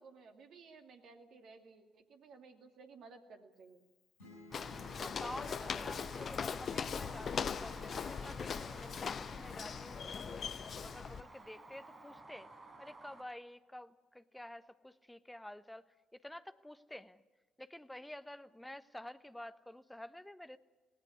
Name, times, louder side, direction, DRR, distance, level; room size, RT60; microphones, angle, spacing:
voice 1, 0.0-3.8, right 4 dB, 55° right, 4 dB, 2.6 m, -56 dB
sound 1, 4.2-7.9, equal, 75° left, 5.9 m, -61 dB
Walk footsteps, 4.5-11.2, left 6 dB, 45° left, 0.8 m, -40 dB
sound 2, 4.5-13.2, right 2 dB, 25° right, 5.1 m, -53 dB
voice 2, 4.9-10.4 10.8-12.5 12.8-17.2 17.6-20.6, left 1 dB, 5° left, 12 dB, 1.1 m, -50 dB
19.0 x 18.5 x 9.6 m, 1.2 s
figure-of-eight pair, 45°, 0 cm